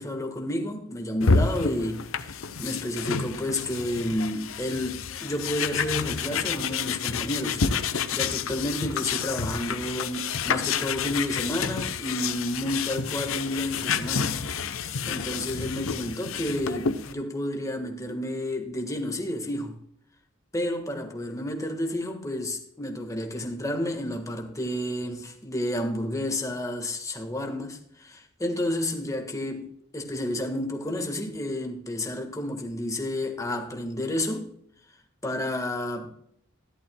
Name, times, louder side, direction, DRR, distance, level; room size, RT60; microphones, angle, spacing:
voice 1, 0.0-7.6 8.1-14.3 14.8-19.8 20.5-34.5 35.2-36.1, left 1 dB, 15° left, 1.5 m, -31 dB
sound 1, 1.2-17.1, left 5 dB, 85° left, 0.7 m, -29 dB
14.0 x 11.5 x 2.2 m
head